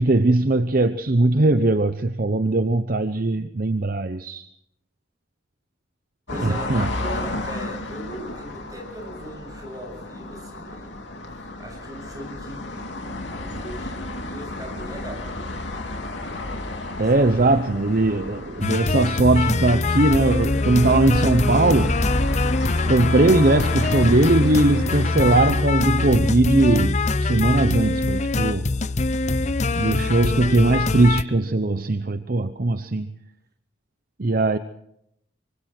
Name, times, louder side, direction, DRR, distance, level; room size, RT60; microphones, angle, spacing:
voice 1, 0.0-4.5 6.3-6.9 17.0-22.0 22.9-28.7 29.7-33.1 34.2-34.6, right 2 dB, 45° right, 0.8 m, -20 dB
sound 1, 6.3-25.5, left 2 dB, 65° left, 2.9 m, -33 dB
voice 2, 6.3-11.0 11.4-13.9 14.2-15.5 17.0-17.3, equal, 20° right, 7.4 m, -39 dB
sound 2, 18.6-31.2, left 3 dB, 35° left, 0.7 m, -23 dB
25.0 x 24.5 x 4.5 m
head